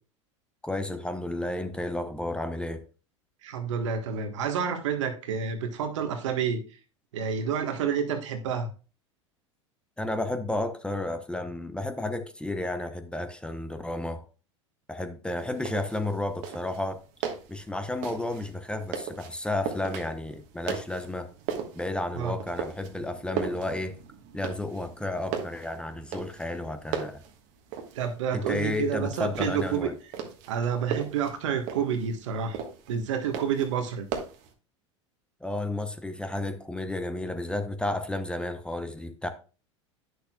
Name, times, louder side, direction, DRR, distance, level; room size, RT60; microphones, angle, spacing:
voice 1, 0.6-2.9 10.0-14.2 14.9-17.0 17.5-21.3 21.7-24.0 24.3-27.2 28.3-29.9 35.4-39.3, left 2 dB, 5° left, 0.8 m, -32 dB
voice 2, 3.4-6.6 7.1-8.7 22.2-22.3 27.9-29.9 30.5-32.6 32.9-34.1, right 7 dB, 75° right, 1.4 m, -29 dB
sound 1, 15.4-34.5, right 7 dB, 55° right, 1.4 m, -38 dB
10.0 x 6.4 x 2.3 m
hypercardioid pair, 85°, 16 cm